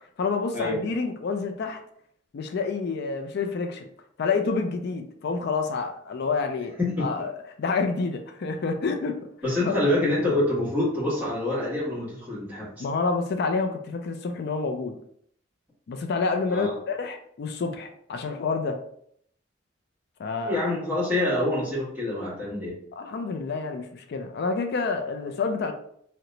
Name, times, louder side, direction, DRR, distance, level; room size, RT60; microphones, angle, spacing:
voice 1, 0.0-1.8 2.3-3.9 4.2-9.2 9.6-9.8 12.8-15.0 15.9-18.8 20.2-20.6 22.9-25.7, left 4 dB, 55° left, 6 dB, 0.4 m, -28 dB
voice 2, 9.4-12.8 16.5-16.8 20.4-22.8, left 1 dB, 10° right, -9 dB, 1.3 m, -26 dB
2.9 x 2.1 x 3.8 m, 0.66 s
head